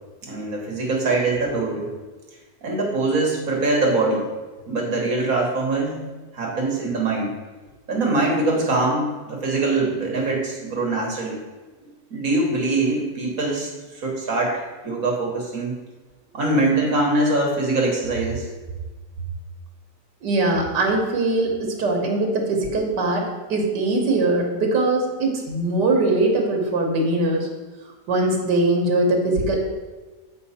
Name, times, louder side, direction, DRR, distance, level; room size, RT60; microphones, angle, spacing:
voice 1, 0.2-1.9 2.6-4.3 4.7-6.0 6.3-7.3 7.9-11.4 12.1-15.8 16.3-18.5, right 2 dB, 55° right, -1 dB, 1.8 m, -23 dB
voice 2, 20.2-27.5 28.1-29.6, right 2 dB, 85° right, 1 dB, 1.8 m, -21 dB
7.7 x 5.3 x 4.2 m, 1.3 s
omnidirectional pair, 1.8 m